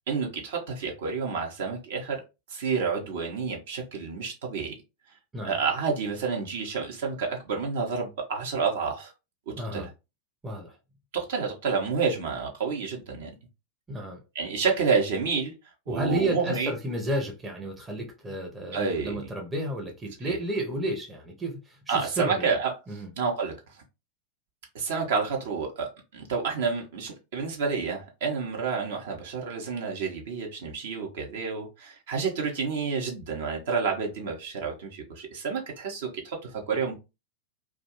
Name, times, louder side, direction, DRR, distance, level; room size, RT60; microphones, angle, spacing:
voice 1, 0.1-2.2 2.5-4.7 5.4-9.1 9.7-9.9 11.1-13.3 14.3-15.5 15.9-16.7 18.7-19.2 20.3-20.4 21.9-22.7 23.2-23.5 24.7-37.0, right 5 dB, 55° right, 0.8 m, -29 dB
voice 2, 9.5-9.9 10.4-10.8 13.9-14.2 15.9-22.5 22.9-23.1, right 1 dB, 15° right, 0.7 m, -32 dB
2.5 x 2.2 x 2.9 m
figure-of-eight pair, 90°, 0 cm